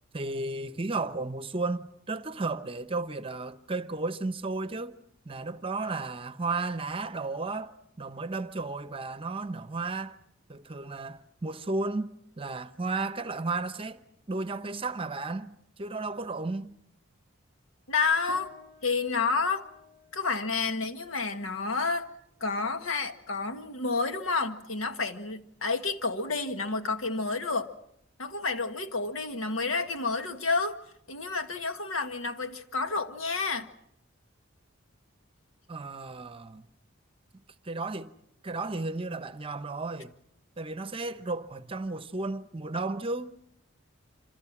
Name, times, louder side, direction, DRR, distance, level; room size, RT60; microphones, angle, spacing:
voice 1, 0.1-5.0 5.2-10.2 10.5-14.0 14.3-16.8 35.7-36.6 37.6-38.1 38.4-40.1 40.6-43.3, right 3 dB, 25° right, 0.9 m, -33 dB
voice 2, 17.9-18.5 18.8-19.6 20.1-22.1 22.4-27.7 28.2-30.8 31.1-33.7, left 4 dB, 85° left, 1.6 m, -30 dB
sound 1, 18.3-27.9, left 2 dB, 50° left, 6.8 m, -57 dB
27.5 x 26.5 x 6.1 m
head